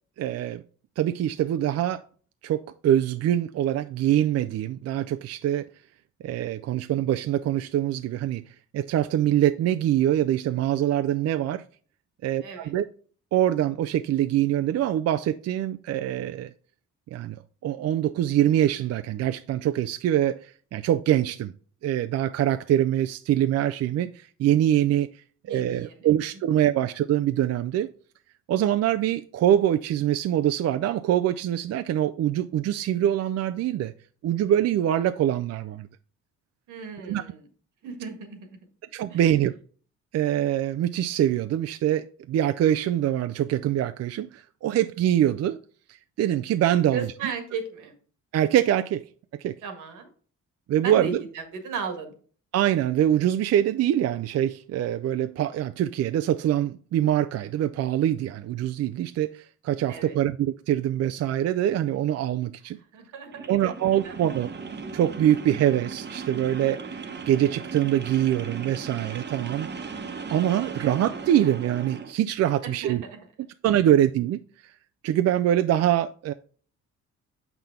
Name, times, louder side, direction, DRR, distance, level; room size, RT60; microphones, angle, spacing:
voice 1, 0.2-0.6 1.0-2.0 2.4-5.7 6.2-8.4 8.7-11.6 12.2-12.8 13.3-16.5 17.1-21.5 21.8-25.1 25.5-27.9 28.5-33.9 34.2-35.9 37.1-37.2 38.9-39.5 40.1-45.6 46.2-47.0 48.3-49.0 49.4-49.6 50.7-51.2 52.5-62.8 63.5-64.5 64.9-67.0 67.3-69.7 70.3-73.0 73.6-74.4 75.0-76.3, right 11 dB, 55° right, 0.4 m, -24 dB
voice 2, 12.4-12.7 25.5-26.1 36.7-37.4 37.8-38.5 39.1-39.4 46.9-47.9 49.6-50.1 50.8-52.1 59.9-60.2 62.7-63.7 64.0-64.2 72.6-73.2, right 5 dB, 85° right, 1.7 m, -36 dB
sound 1, 63.3-72.1, right 5 dB, 35° right, 1.0 m, -37 dB
6.8 x 5.9 x 3.6 m
cardioid pair, 90°, 30 cm